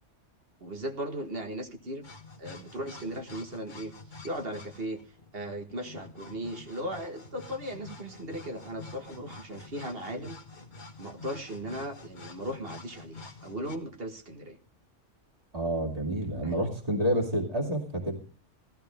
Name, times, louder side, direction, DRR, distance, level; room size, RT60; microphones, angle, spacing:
voice 1, 0.6-2.1 2.4-3.9 4.2-5.0 5.3-10.4 11.0-14.6 16.4-16.7, right 1 dB, 50° right, 5 dB, 1.7 m, -37 dB
sound 1, 2.0-13.8, left 3 dB, 40° left, 1.6 m, -48 dB
voice 2, 15.5-18.2, equal, 30° right, 0 dB, 2.6 m, -29 dB
15.0 x 13.5 x 3.4 m, 0.35 s
omnidirectional pair, 1.3 m